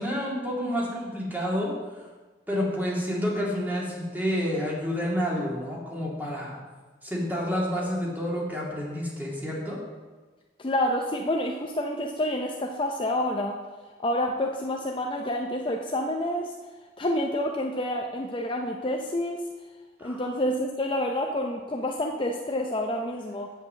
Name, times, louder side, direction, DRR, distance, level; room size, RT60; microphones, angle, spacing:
voice 1, 0.0-1.7 2.5-6.6 7.0-9.8 20.0-20.2, equal, 10° right, -4 dB, 2.2 m, -29 dB
voice 2, 10.6-13.6 14.0-16.5 17.0-19.5 20.0-23.5, left 1 dB, 30° left, 2 dB, 0.5 m, -28 dB
8.2 x 5.5 x 7.4 m, 1.3 s
head